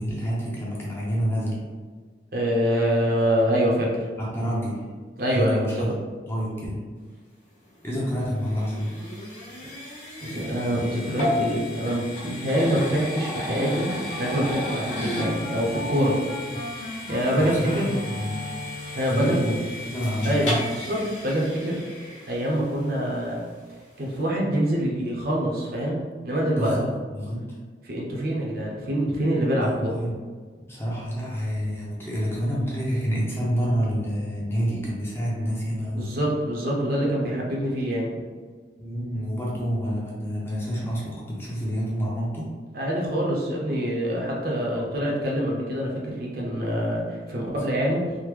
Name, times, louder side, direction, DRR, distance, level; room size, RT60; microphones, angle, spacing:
voice 1, 0.0-1.6 4.2-4.8 5.3-5.9 6.3-6.8 7.8-8.9 16.4-16.6 17.0-17.1 17.4-18.4 19.0-20.6 26.5-27.6 29.6-30.2 30.7-36.1 38.8-42.5 44.8-45.0 47.3-47.5, equal, 15° left, -6 dB, 0.6 m, -28 dB
voice 2, 2.3-4.1 5.2-5.7 10.2-13.9 14.2-16.2 16.8-17.9 18.9-19.4 20.2-20.5 20.8-21.8 22.3-23.4 24.0-26.0 26.2-26.7 27.8-30.0 36.0-38.1 42.7-48.1, equal, 50° right, -3 dB, 0.6 m, -25 dB
sound 1, 7.7-22.9, left 1 dB, 75° left, 1.3 m, -34 dB
sound 2, 13.5-19.1, left 1 dB, 60° left, 0.6 m, -37 dB
3.5 x 2.1 x 3.1 m, 1.5 s
head